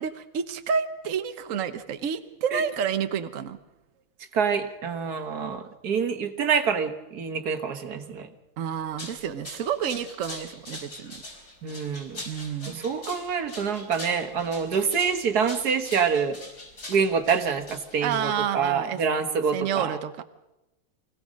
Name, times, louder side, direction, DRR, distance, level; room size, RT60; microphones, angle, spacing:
voice 1, 0.0-3.6 8.6-11.2 12.3-12.8 18.0-19.0 19.5-20.2, right 7 dB, 60° right, 9 dB, 1.3 m, -29 dB
voice 2, 4.3-8.3 11.6-12.2 12.7-16.4 16.9-20.0, right 6 dB, 90° right, 7 dB, 1.9 m, -26 dB
sound 1, 8.7-18.6, left 1 dB, 80° left, 5.0 m, -42 dB
24.5 x 17.0 x 6.4 m, 0.97 s
omnidirectional pair, 1.6 m